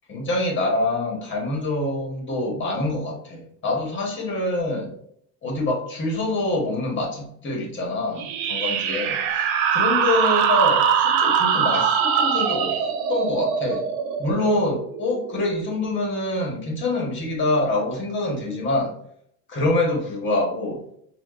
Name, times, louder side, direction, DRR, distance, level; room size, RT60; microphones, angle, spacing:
voice 1, 0.1-4.9 5.4-12.8 13.1-13.8 14.2-18.9 19.5-20.8, left 2 dB, 30° left, 0 dB, 1.4 m, -25 dB
sound 1, 8.2-15.4, right 7 dB, 90° right, 0.6 m, -22 dB
4.4 x 2.6 x 2.5 m, 0.67 s
cardioid pair, 125°, 40 cm